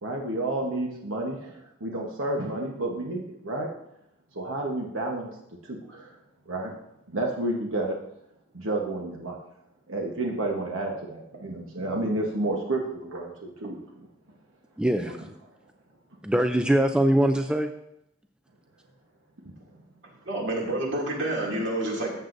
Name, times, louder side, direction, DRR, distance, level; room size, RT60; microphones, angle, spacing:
voice 1, 0.0-3.7 4.3-5.3 5.6-6.1 6.5-6.7 7.1-7.9 8.5-9.4 9.9-14.1, right 2 dB, 75° right, 0 dB, 1.1 m, -30 dB
voice 2, 14.8-15.3 16.2-17.7, right 1 dB, 5° right, 6 dB, 0.3 m, -23 dB
voice 3, 20.3-22.1, right 1 dB, 60° right, -2 dB, 2.6 m, -28 dB
13.5 x 7.8 x 2.6 m, 0.81 s
head